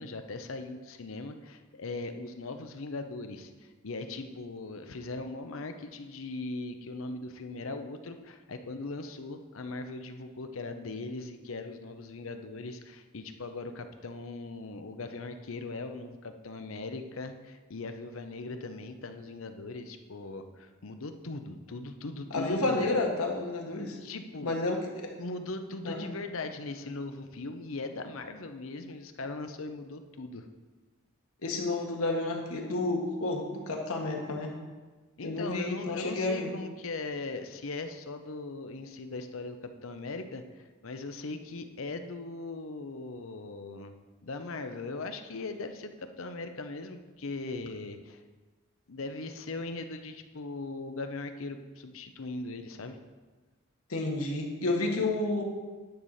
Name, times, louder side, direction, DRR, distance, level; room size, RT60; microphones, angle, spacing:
voice 1, 0.0-22.9 24.0-24.5 25.2-30.5 35.2-43.9 44.2-48.2 48.9-53.0, left 3 dB, 65° left, 7 dB, 0.7 m, -39 dB
voice 2, 22.3-24.0 24.4-25.1 25.8-26.1 31.4-34.5 35.2-36.5 53.9-55.4, left 2 dB, 85° left, 0 dB, 1.5 m, -30 dB
10.5 x 4.1 x 6.5 m, 1.3 s
head